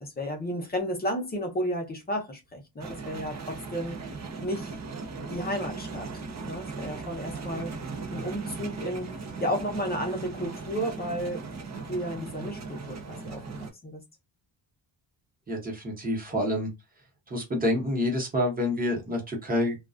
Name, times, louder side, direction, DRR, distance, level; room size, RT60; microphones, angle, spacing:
voice 1, 0.0-4.0 4.4-4.8 5.3-6.1 6.4-7.7 8.1-11.5 11.9-14.0, equal, 20° left, 0.6 m, -33 dB
sound 1, 2.8-13.7, right 4 dB, 40° right, 0.5 m, -38 dB
voice 2, 15.5-16.7 17.3-19.8, left 1 dB, 20° right, 0.9 m, -27 dB
2.3 x 2.2 x 2.3 m
wide cardioid pair, 160°, 43 cm